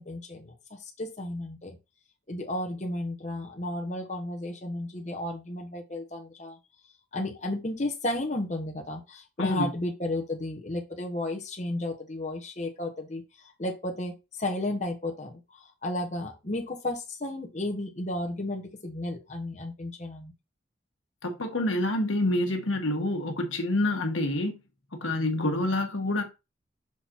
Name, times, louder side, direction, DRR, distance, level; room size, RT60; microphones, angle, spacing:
voice 1, 0.0-1.8 2.3-6.6 7.1-20.3, left 1 dB, 35° left, 1.3 m, -33 dB
voice 2, 21.2-24.5 25.0-26.2, left 1 dB, 90° left, 1.5 m, -27 dB
6.1 x 3.9 x 4.5 m
head